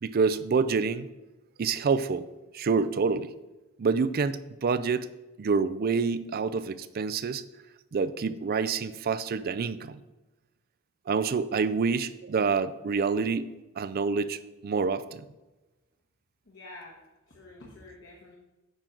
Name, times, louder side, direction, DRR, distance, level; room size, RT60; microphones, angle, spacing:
voice 1, 0.0-1.1 1.6-2.3 2.5-3.3 3.8-5.1 5.4-7.4 7.9-10.0 11.1-15.3, right 5 dB, 45° right, 15 dB, 0.4 m, -27 dB
voice 2, 16.5-17.0 17.3-18.4, left 2 dB, 55° left, -2 dB, 1.3 m, -48 dB
8.9 x 6.0 x 3.8 m, 1.1 s
head